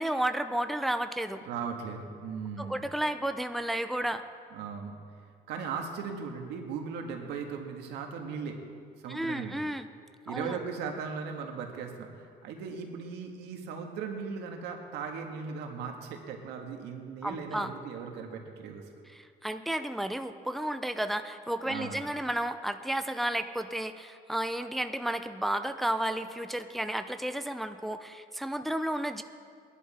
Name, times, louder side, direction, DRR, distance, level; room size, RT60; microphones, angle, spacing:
voice 1, 0.0-1.4 2.6-4.2 9.1-9.9 10.3-10.6 17.2-17.7 19.1-29.2, right 1 dB, ahead, 8 dB, 0.6 m, -32 dB
voice 2, 1.5-2.8 4.5-5.0 5.5-8.6 9.0-9.6 10.3-18.8 21.6-22.0, right 5 dB, 85° right, 3 dB, 1.8 m, -38 dB
21.0 x 11.0 x 4.4 m, 2.2 s
cardioid pair, 110°, 17 cm